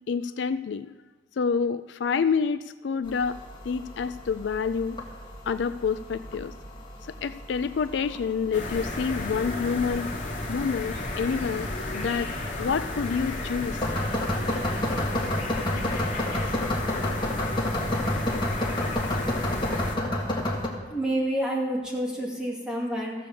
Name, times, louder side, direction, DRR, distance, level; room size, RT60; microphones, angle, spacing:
voice 1, 0.1-0.9 1.4-5.0 5.5-6.5 7.2-10.1 10.5-11.7 11.9-12.3 12.6-13.8, left 6 dB, 70° left, 13 dB, 0.4 m, -28 dB
sound 1, 3.0-20.7, left 1 dB, 25° left, 1.8 m, -32 dB
sound 2, 8.5-20.0, left 2 dB, 45° left, 2.1 m, -33 dB
voice 2, 20.9-23.1, right 1 dB, 5° right, -4 dB, 2.5 m, -28 dB
14.5 x 6.8 x 6.9 m, 1.2 s
head